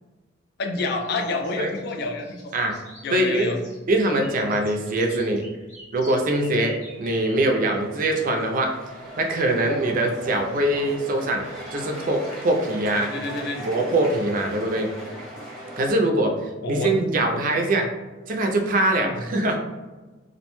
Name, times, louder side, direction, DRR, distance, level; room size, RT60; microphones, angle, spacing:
voice 1, 0.6-2.5 3.0-3.6 13.0-13.6 16.6-16.9 19.0-19.2, left 3 dB, 55° left, 5 dB, 0.3 m, -28 dB
sound 1, 0.8-7.4 9.1-9.2 10.9-12.6, left 1 dB, 85° left, 1.2 m, -47 dB
voice 2, 3.1-3.5 3.9-5.4 5.9-8.7 9.2-11.4 11.7-13.1 13.6-14.9 15.8-16.3 16.7-17.9 18.3-19.6, right 1 dB, 45° right, 3 dB, 0.4 m, -23 dB
sound 2, 7.0-15.9, equal, ahead, 0.8 m, -39 dB
2.5 x 2.1 x 2.9 m, 1.2 s
head